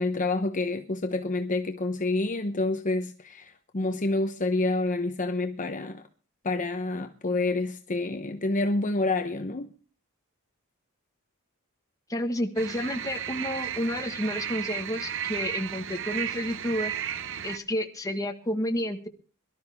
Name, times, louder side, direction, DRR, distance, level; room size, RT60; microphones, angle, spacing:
voice 1, 0.0-6.0 6.4-9.7, left 2 dB, 35° left, 0.9 m, -28 dB
voice 2, 12.1-16.9 17.4-19.1, equal, 15° left, 1.6 m, -30 dB
sound 1, 12.6-17.6, right 9 dB, 60° right, 0.8 m, -34 dB
22.5 x 12.5 x 3.6 m
head